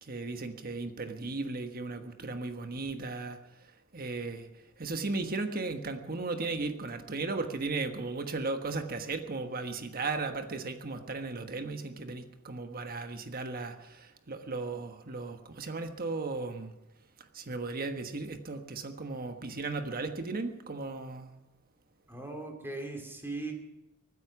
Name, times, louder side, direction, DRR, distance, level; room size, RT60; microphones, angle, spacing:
voice 1, 0.0-3.4 3.9-16.7 17.3-21.3, right 3 dB, 45° right, 7 dB, 1.3 m, -36 dB
voice 2, 22.1-23.5, right 2 dB, 10° right, 3 dB, 2.6 m, -39 dB
23.5 x 9.6 x 6.0 m, 0.95 s
head